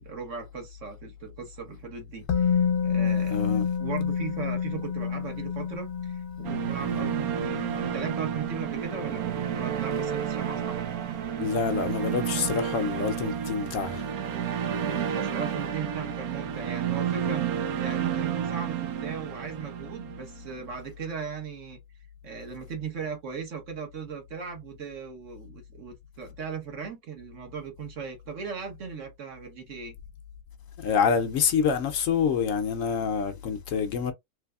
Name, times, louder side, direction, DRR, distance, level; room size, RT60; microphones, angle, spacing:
voice 1, 0.0-10.9 15.1-17.4 17.8-21.8 22.2-29.9, right 6 dB, 55° right, 1.4 m, -38 dB
Musical instrument, 2.3-10.2 10.5-10.6, left 7 dB, 85° left, 1.2 m, -30 dB
voice 2, 3.3-3.7 11.4-14.0 30.8-34.1, left 6 dB, 65° left, 0.9 m, -26 dB
sound 1, 6.4-20.6, right 9 dB, 75° right, 1.1 m, -31 dB
3.4 x 3.1 x 2.3 m
omnidirectional pair, 1.6 m